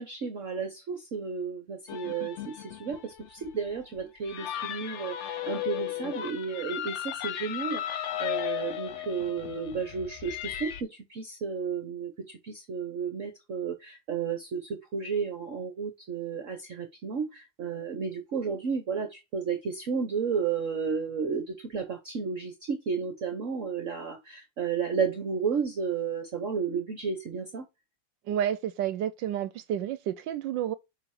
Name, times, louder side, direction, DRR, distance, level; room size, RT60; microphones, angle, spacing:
voice 1, 0.0-27.7, right 6 dB, 50° right, 1.0 m, -32 dB
sound 1, 1.9-10.8, left 12 dB, 85° left, 0.6 m, -35 dB
voice 2, 28.3-30.7, right 10 dB, 75° right, 1.2 m, -30 dB
7.0 x 3.3 x 6.1 m
omnidirectional pair, 2.1 m